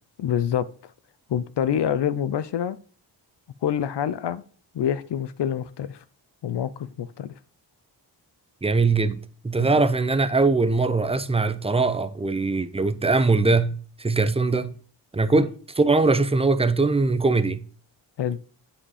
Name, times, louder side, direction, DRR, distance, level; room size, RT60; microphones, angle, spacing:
voice 1, 0.2-0.7 1.3-2.8 3.6-4.4 4.7-6.0 6.4-7.3 9.6-9.9 15.4-15.5 18.2-18.4, left 9 dB, 70° left, 0.6 m, -26 dB
voice 2, 8.6-9.2 9.4-14.7 15.1-17.6, right 3 dB, 15° right, 0.7 m, -21 dB
8.6 x 5.1 x 4.9 m
cardioid pair, 80°, 44 cm